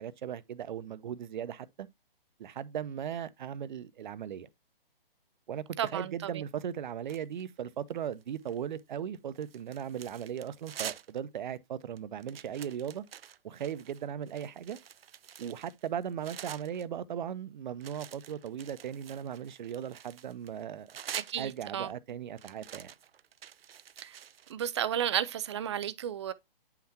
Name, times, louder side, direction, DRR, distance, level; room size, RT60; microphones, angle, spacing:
voice 1, 0.0-1.9 2.4-4.5 5.5-13.0 13.4-14.8 15.4-20.9 21.4-22.9, right 9 dB, 55° right, 0.8 m, -38 dB
voice 2, 5.8-6.4 21.1-21.9 24.0-24.2 24.5-26.3, right 10 dB, 30° right, 0.5 m, -33 dB
sound 1, 7.1-7.6 8.1-8.8 9.1-11.2 11.6-11.7 12.0-16.9 17.8-21.8 22.4-24.5, right 9 dB, 80° right, 0.6 m, -47 dB
9.3 x 5.9 x 2.8 m
hypercardioid pair, 150°, 29 cm